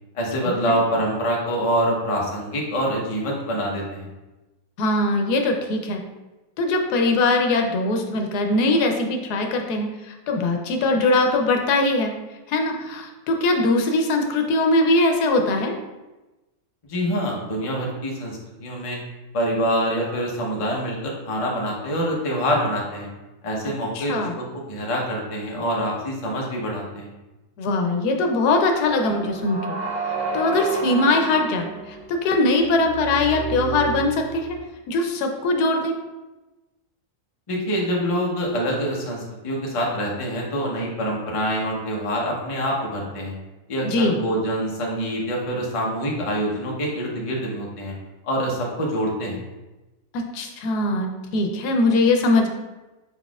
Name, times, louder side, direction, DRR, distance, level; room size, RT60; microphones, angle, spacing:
voice 1, 0.1-4.1 16.9-19.0 19.3-23.1 23.4-27.1 37.5-43.3 43.7-47.9 48.2-49.4, equal, 30° left, -2 dB, 0.6 m, -25 dB
voice 2, 4.8-6.0 6.6-12.1 12.5-15.7 23.9-24.3 27.6-29.8 30.3-34.6 34.9-35.9 43.8-44.2 50.1-52.5, left 2 dB, 85° left, 3 dB, 1.2 m, -21 dB
sound 1, 28.7-34.7, right 4 dB, 55° right, 1.7 m, -31 dB
5.5 x 4.1 x 2.3 m, 1.1 s
omnidirectional pair, 1.6 m